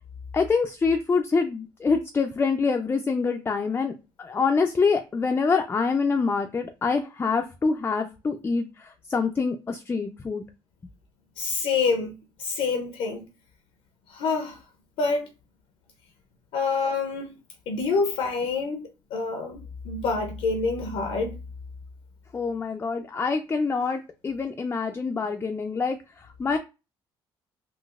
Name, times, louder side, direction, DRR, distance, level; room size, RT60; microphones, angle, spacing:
voice 1, 0.3-3.9 4.2-10.4 22.3-26.0 26.4-26.6, left 4 dB, 25° left, 0.4 m, -25 dB
voice 2, 11.4-12.1 12.4-13.3 14.1-14.6 15.0-15.3 16.5-17.3 17.7-21.4, left 4 dB, 80° left, 0.6 m, -27 dB
3.9 x 2.4 x 2.4 m
cardioid pair, 100°, 10 cm